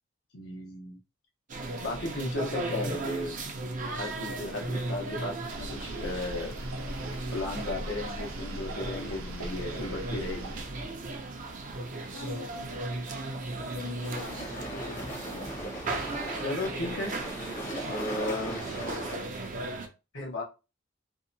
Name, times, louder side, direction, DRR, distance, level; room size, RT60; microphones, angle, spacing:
voice 1, 0.3-1.0 1.8-3.4 3.9-6.5 7.3-10.5 16.4-17.1 17.8-18.6 20.1-20.4, left 2 dB, 85° left, 0 dB, 0.9 m, -35 dB
sound 1, 1.5-19.9, right 2 dB, 40° right, 0.4 m, -37 dB
sound 2, 5.5-10.6, right 1 dB, 90° right, 0.6 m, -40 dB
voice 2, 12.1-12.9 13.6-15.5 18.8-19.3, left 5 dB, 55° left, 2 dB, 0.4 m, -44 dB
sound 3, 14.0-19.1, equal, 40° left, 0.8 m, -38 dB
2.6 x 2.1 x 2.6 m, 0.30 s
head